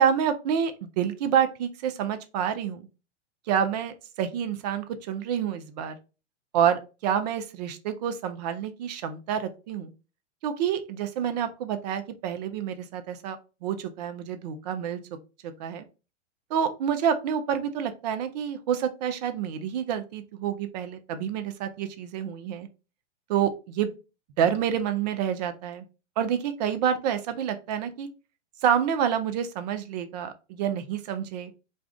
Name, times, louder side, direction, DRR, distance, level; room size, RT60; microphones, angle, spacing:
voice 1, 0.0-2.9 3.5-6.0 6.5-9.9 10.4-15.0 15.4-15.8 16.5-22.7 23.3-23.9 24.4-25.8 26.2-28.1 28.6-31.5, right 8 dB, 35° right, 9 dB, 0.4 m, -28 dB
2.5 x 2.4 x 3.3 m, 0.31 s
hypercardioid pair, 120°, 37 cm